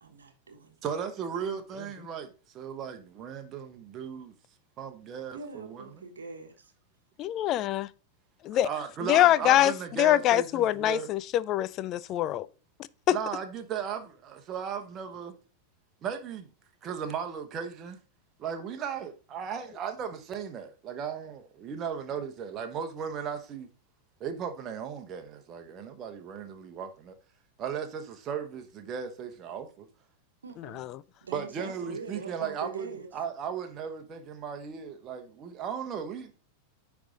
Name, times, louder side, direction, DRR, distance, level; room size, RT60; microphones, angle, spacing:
voice 1, 0.0-0.7 5.3-6.7 30.4-30.9 31.2-33.1, right 4 dB, 70° right, 1.2 m, -43 dB
voice 2, 0.8-4.3 4.8-5.9 8.6-11.1 13.1-15.4 16.0-16.5 16.8-18.0 18.4-23.7 24.2-27.2 27.6-29.9 31.3-32.9 33.1-36.4, right 7 dB, 30° right, 1.1 m, -36 dB
voice 3, 7.2-7.9 8.5-8.7 9.0-9.7 10.0-12.5 13.1-13.2 30.7-30.9, left 13 dB, 35° left, 0.3 m, -24 dB
9.8 x 3.6 x 3.7 m
figure-of-eight pair, 90°, 0 cm